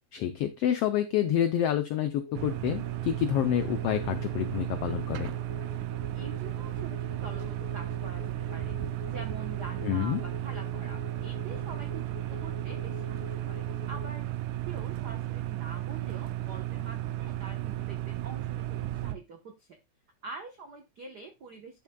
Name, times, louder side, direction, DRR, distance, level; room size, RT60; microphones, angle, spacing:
voice 1, 0.1-5.3 9.8-10.2, left 10 dB, 80° left, 9 dB, 1.3 m, -28 dB
sound 1, 2.1-14.1, left 10 dB, 25° left, 1.8 m, -47 dB
sound 2, 2.3-19.2, right 14 dB, 90° right, 2.1 m, -34 dB
voice 2, 6.1-8.8 9.0-14.3 14.7-19.8 20.2-21.8, right 4 dB, 65° right, 4 dB, 1.0 m, -45 dB
11.0 x 6.5 x 2.3 m, 0.21 s
omnidirectional pair, 3.4 m